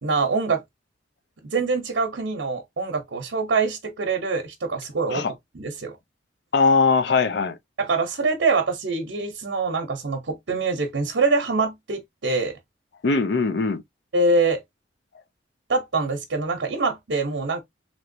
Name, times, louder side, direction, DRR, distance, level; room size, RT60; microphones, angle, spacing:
voice 1, 0.0-0.6 1.4-5.2 5.5-5.9 7.8-12.6 14.1-14.6 15.7-17.6, right 3 dB, 75° right, 0.7 m, -24 dB
voice 2, 6.5-7.6 13.0-13.8, left 4 dB, 65° left, 0.5 m, -20 dB
3.2 x 3.0 x 2.6 m
head